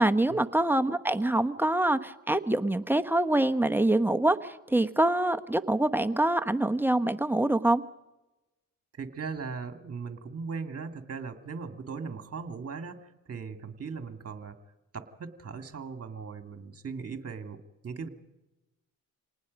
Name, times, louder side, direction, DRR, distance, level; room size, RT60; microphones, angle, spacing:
voice 1, 0.0-7.8, right 1 dB, 5° right, 8 dB, 1.1 m, -25 dB
voice 2, 9.0-14.6 14.9-18.1, right 5 dB, 40° right, 8 dB, 2.2 m, -38 dB
27.0 x 19.0 x 5.3 m, 1.0 s
cardioid pair, 70°, 36 cm